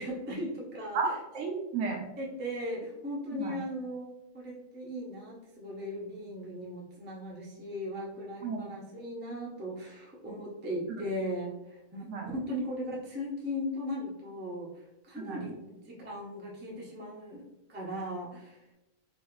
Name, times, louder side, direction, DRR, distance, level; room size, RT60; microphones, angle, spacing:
voice 1, 0.0-1.2 2.2-12.0 12.3-18.6, equal, 15° right, -3 dB, 0.4 m, -38 dB
voice 2, 1.3-2.0 3.3-3.5 8.4-8.6 12.1-12.3 15.2-15.4, right 4 dB, 70° right, 2 dB, 0.9 m, -32 dB
3.1 x 2.4 x 3.0 m, 0.90 s
omnidirectional pair, 1.4 m